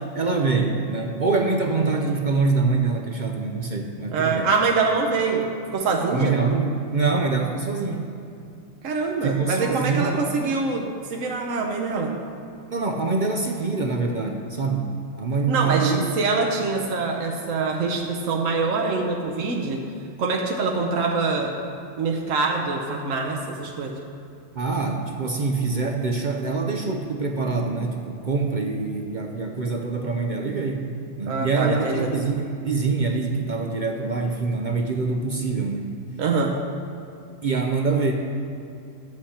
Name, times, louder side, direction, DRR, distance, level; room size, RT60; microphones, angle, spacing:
voice 1, 0.0-4.5 6.1-8.1 9.2-10.2 12.7-14.9 15.2-16.1 24.5-30.9 31.2-36.0 37.4-38.1, right 4 dB, 45° right, 3 dB, 0.7 m, -25 dB
voice 2, 4.1-6.4 8.8-12.2 15.5-19.8 20.2-21.6 22.0-24.0 31.3-32.1 36.2-36.6, right 4 dB, 80° right, 1 dB, 1.2 m, -24 dB
11.5 x 8.0 x 4.3 m, 2.6 s
omnidirectional pair, 1.3 m